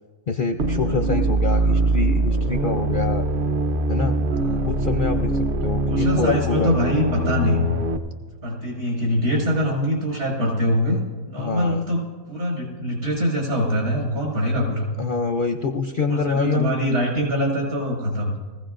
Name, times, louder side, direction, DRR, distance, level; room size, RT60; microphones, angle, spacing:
voice 1, 0.3-3.3 3.9-4.2 4.6-6.7 11.4-11.8 15.0-16.8, left 4 dB, 60° left, 6 dB, 0.5 m, -25 dB
sound 1, 0.6-8.0, right 1 dB, 50° right, 0.7 m, -22 dB
voice 2, 1.5-1.8 4.3-4.7 5.9-7.6 8.4-11.0 11.3-14.9 16.1-18.3, equal, 75° right, -3 dB, 5.6 m, -24 dB
21.5 x 16.0 x 2.6 m, 1.4 s
omnidirectional pair, 1.5 m